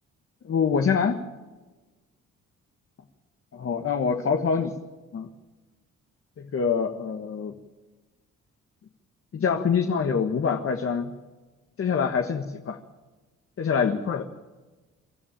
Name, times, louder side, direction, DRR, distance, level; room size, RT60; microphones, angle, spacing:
voice 1, 0.4-1.2 3.5-4.7 5.1-5.3 6.4-7.5 9.3-11.1 11.8-12.8 13.6-14.2, left 6 dB, 45° left, 5 dB, 1.6 m, -25 dB
25.0 x 13.5 x 8.9 m, 1.2 s
cardioid pair, 90°, 30 cm